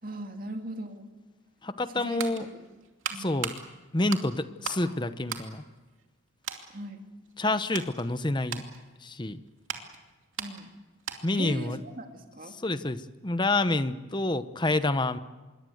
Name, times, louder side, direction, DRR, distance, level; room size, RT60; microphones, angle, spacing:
voice 1, 0.0-1.1 1.9-2.6 3.1-3.3 6.7-7.1 10.4-10.7 11.3-12.6, right 1 dB, 40° right, 4 dB, 2.6 m, -39 dB
voice 2, 1.6-2.4 3.2-3.5 3.9-5.6 7.4-8.6 9.0-9.4 11.2-11.8 12.6-15.2, left 2 dB, 20° left, 12 dB, 0.9 m, -28 dB
sound 1, 1.8-4.9 5.2-6.2 6.4-6.7 7.2-11.5 11.8-11.9, right 7 dB, 75° right, 2.6 m, -39 dB
26.5 x 22.5 x 7.9 m, 1.2 s
head